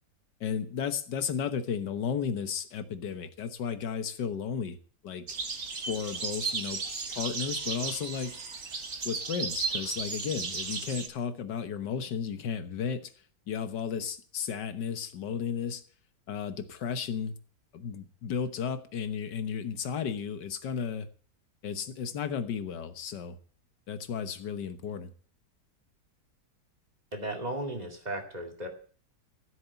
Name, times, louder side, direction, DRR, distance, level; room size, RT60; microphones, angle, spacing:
voice 1, 0.4-4.8 5.0-5.3 5.9-6.8 7.1-8.4 9.0-13.1 13.5-15.8 16.3-17.3 17.7-21.1 21.6-23.4 23.9-25.1, left 7 dB, 85° left, 10 dB, 1.8 m, -34 dB
sound 1, 5.3-11.1, right 4 dB, 45° right, 1.6 m, -35 dB
voice 2, 27.1-28.7, right 1 dB, 25° right, 3 dB, 2.4 m, -35 dB
14.0 x 8.0 x 7.0 m, 0.43 s
omnidirectional pair, 1.8 m